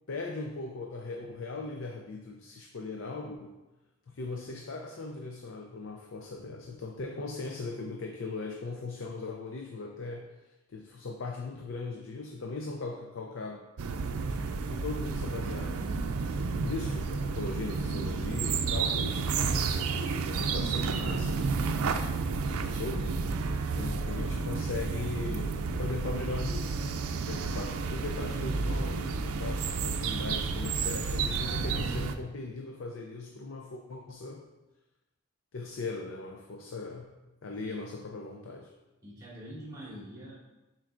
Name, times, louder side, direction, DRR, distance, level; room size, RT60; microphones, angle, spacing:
voice 1, 0.1-3.6 4.1-10.3 10.7-13.6 14.2-14.4 14.7-16.2 16.6-21.5 22.6-23.2 23.7-26.8 27.2-34.4 35.5-38.7, left 3 dB, 60° left, 2 dB, 0.5 m, -39 dB
sound 1, 13.8-32.2, right 4 dB, 85° right, 0.5 m, -31 dB
voice 2, 39.0-40.3, equal, 20° right, -8 dB, 2.1 m, -45 dB
10.5 x 4.4 x 2.5 m, 1.0 s
head